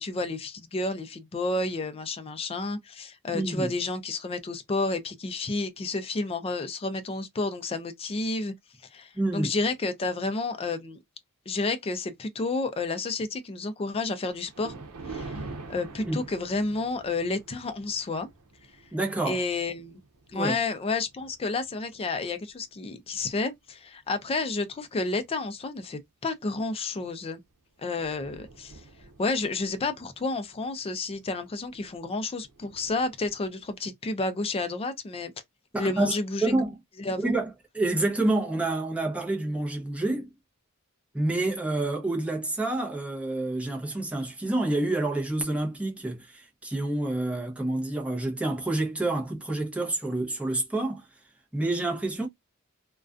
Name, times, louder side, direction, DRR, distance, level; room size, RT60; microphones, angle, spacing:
voice 1, 0.0-8.5 8.9-11.0 11.5-14.7 15.0-15.4 15.7-18.3 19.2-20.0 20.3-27.4 27.8-28.8 29.2-35.3 35.8-36.5 37.0-37.2, left 3 dB, 25° left, 0.4 m, -30 dB
voice 2, 3.3-3.7 9.2-9.5 16.0-16.2 18.9-19.4 20.3-20.6 35.7-36.7 37.2-40.3 41.1-51.1 51.5-52.3, right 2 dB, 5° right, 0.7 m, -28 dB
Thunder, 14.3-22.8 23.3-23.6 24.3-24.4 24.7-24.8 27.0-27.2 27.5-27.6 27.8-33.8, right 3 dB, 85° right, 0.7 m, -47 dB
2.3 x 2.2 x 2.4 m
head